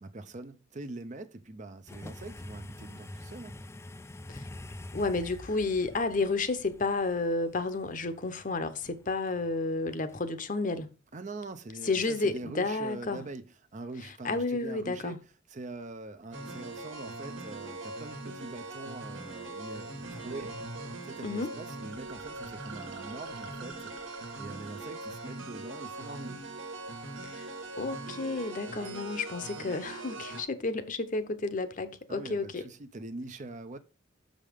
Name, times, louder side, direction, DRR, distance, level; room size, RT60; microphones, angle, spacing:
voice 1, 0.0-3.6 11.1-15.2 15.5-20.5 21.0-23.9 24.4-26.4 32.1-33.8, right 2 dB, 40° right, 0.6 m, -43 dB
sound 1, 1.9-10.4, left 2 dB, 15° left, 0.3 m, -46 dB
voice 2, 4.9-10.9 11.8-13.2 14.2-15.2 21.2-21.5 27.3-32.6, left 3 dB, 40° left, 0.8 m, -31 dB
sound 2, 16.3-30.4, right 2 dB, 80° right, 1.5 m, -41 dB
6.5 x 5.1 x 5.1 m
head